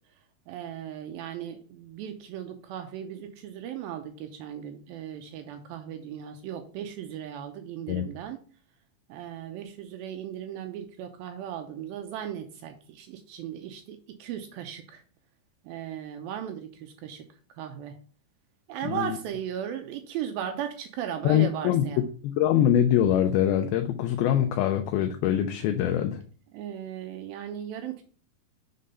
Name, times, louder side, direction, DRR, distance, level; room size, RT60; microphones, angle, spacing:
voice 1, 0.5-8.4 9.1-15.0 15.6-17.3 17.5-18.0 18.7-22.1 26.5-28.0, right 9 dB, 80° right, 6 dB, 2.3 m, -37 dB
voice 2, 18.9-19.2 21.2-21.8 22.2-26.2, left 10 dB, 80° left, 6 dB, 2.4 m, -23 dB
6.7 x 3.8 x 5.4 m, 0.41 s
omnidirectional pair, 4.5 m